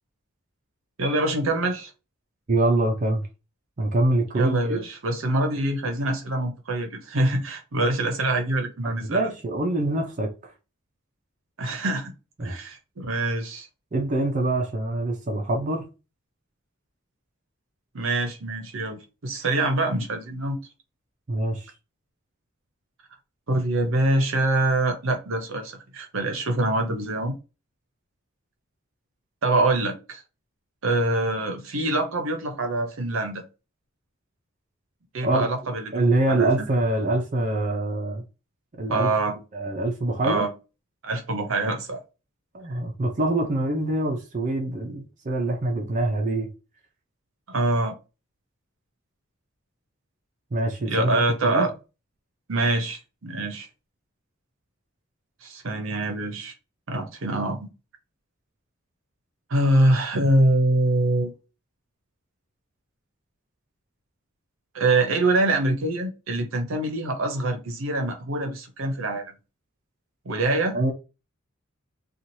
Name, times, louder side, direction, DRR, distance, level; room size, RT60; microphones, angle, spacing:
voice 1, 1.0-1.9 4.3-9.3 11.6-12.1 12.4-13.7 17.9-20.6 23.5-27.4 29.4-30.2 30.8-33.4 35.1-36.0 36.3-36.7 38.9-39.4 40.2-40.5 41.0-42.0 47.5-47.9 50.8-51.7 52.5-53.7 55.4-56.5 56.9-57.7 59.5-61.3 64.7-69.3 70.2-70.8, right 2 dB, 70° right, 0.8 m, -24 dB
voice 2, 2.5-3.2 3.8-4.8 8.8-10.3 12.4-12.6 13.9-15.9 21.3-21.7 35.2-35.5 35.9-38.2 38.8-39.1 39.5-40.4 42.5-46.5 50.5-51.7 70.7-70.9, right 2 dB, 40° right, 0.5 m, -25 dB
3.0 x 2.4 x 2.7 m
head